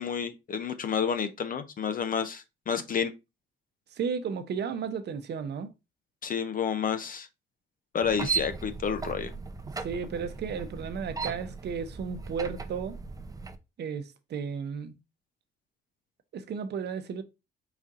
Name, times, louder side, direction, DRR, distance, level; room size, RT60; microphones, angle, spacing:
voice 1, 0.0-3.1 6.2-7.3 7.9-9.3, left 7 dB, 45° left, 0.6 m, -30 dB
voice 2, 3.9-5.7 9.8-13.0 13.8-14.9 16.3-17.2, right 6 dB, 60° right, 0.8 m, -34 dB
sound 1, 8.0-13.6, right 5 dB, 20° right, 0.5 m, -36 dB
5.0 x 2.7 x 3.6 m
cardioid pair, 90°, 20 cm